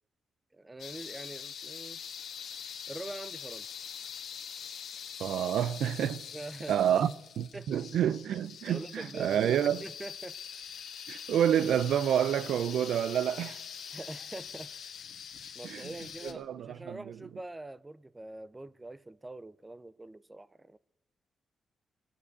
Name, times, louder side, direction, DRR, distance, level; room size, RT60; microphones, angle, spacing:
voice 1, 0.5-2.0 2.9-3.7 6.3-7.1 7.5-7.7 8.7-9.4 9.8-10.4 13.9-14.7 15.5-20.8, right 2 dB, 20° right, 0.4 m, -44 dB
sound 1, 0.8-16.3, left 7 dB, 75° left, 1.6 m, -44 dB
voice 2, 5.2-6.3 6.7-9.8 11.1-13.6 15.6-15.9 16.2-17.2, right 9 dB, 80° right, 0.5 m, -29 dB
16.0 x 9.2 x 8.3 m
cardioid pair, 75°, 0 cm